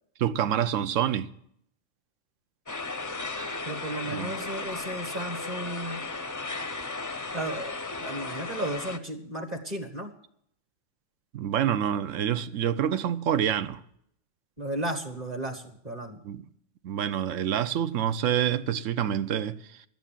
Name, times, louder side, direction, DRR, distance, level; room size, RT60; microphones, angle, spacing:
voice 1, 0.2-1.3 4.1-4.3 11.3-13.8 16.2-16.4 16.8-19.6, right 9 dB, 85° right, 1.1 m, -27 dB
sound 1, 2.7-9.0, left 3 dB, 20° left, 0.5 m, -35 dB
voice 2, 3.6-6.0 7.3-10.1 14.6-16.2, right 1 dB, 35° right, 1.5 m, -34 dB
12.5 x 9.3 x 7.4 m
omnidirectional pair, 1.3 m